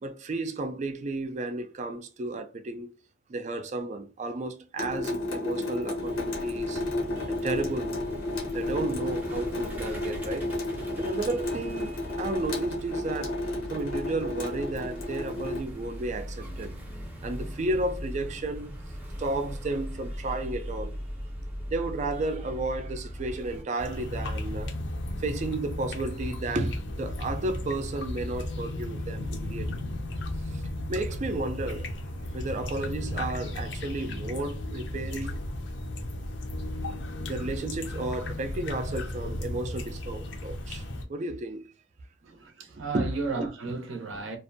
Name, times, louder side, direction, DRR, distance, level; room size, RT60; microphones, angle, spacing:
voice 1, 0.0-3.0 3.3-6.8 7.3-8.0 8.5-10.5 11.0-13.4 13.7-16.7 17.2-18.8 19.2-21.0 21.7-24.7 25.2-29.7 30.5-30.6 30.9-31.9 32.3-35.4 37.2-40.8 41.1-41.7 42.9-43.1, right 2 dB, 35° right, 0.3 m, -33 dB
Water tap faucet / Sink (filling or washing) / Drip, 4.8-15.6, left 2 dB, 85° left, 0.7 m, -32 dB
sound 1, 6.0-23.6, equal, 10° right, 0.7 m, -40 dB
sound 2, 23.8-41.0, left 1 dB, 55° left, 0.5 m, -34 dB
voice 2, 42.2-44.4, right 3 dB, 70° right, 0.6 m, -33 dB
2.5 x 2.1 x 2.5 m
head